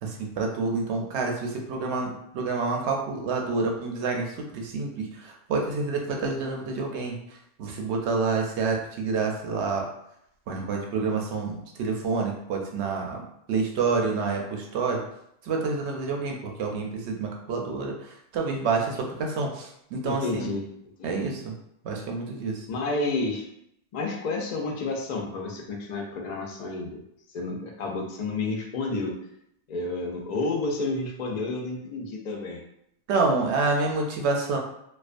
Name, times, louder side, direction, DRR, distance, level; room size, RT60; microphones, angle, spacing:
voice 1, 0.0-7.2 7.6-9.8 10.5-13.2 13.5-15.0 15.4-20.4 21.0-21.5 21.8-22.6 33.1-34.6, right 4 dB, 70° right, 1 dB, 0.8 m, -28 dB
voice 2, 20.0-20.6 21.0-21.3 22.7-23.4 23.9-27.0 27.3-29.2 29.7-32.6, left 3 dB, 65° left, 0 dB, 0.4 m, -30 dB
2.4 x 2.2 x 2.4 m, 0.76 s
omnidirectional pair, 1.2 m